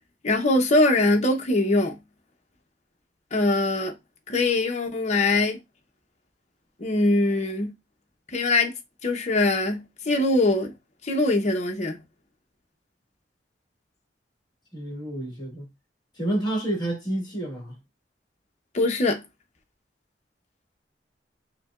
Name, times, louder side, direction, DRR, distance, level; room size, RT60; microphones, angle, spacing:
voice 1, 0.2-2.0 3.3-3.9 4.3-5.6 6.8-7.7 8.3-8.7 9.0-10.7 11.0-12.0 18.7-19.2, left 2 dB, 40° left, 0.7 m, -22 dB
voice 2, 14.7-15.7 16.2-17.8, right 1 dB, 25° left, 1.7 m, -29 dB
5.6 x 2.2 x 2.4 m
head